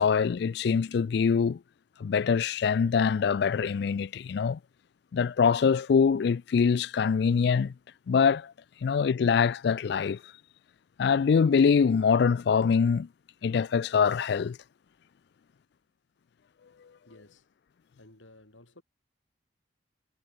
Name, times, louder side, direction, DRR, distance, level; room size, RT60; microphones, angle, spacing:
voice 1, 0.0-1.6 2.0-4.6 5.1-7.7 8.1-8.5 8.8-10.2 11.0-13.1 13.4-14.6, left 6 dB, 60° left, 0.3 m, -24 dB
voice 2, 17.1-17.5 18.0-18.8, left 1 dB, 90° left, 5.6 m, -54 dB
head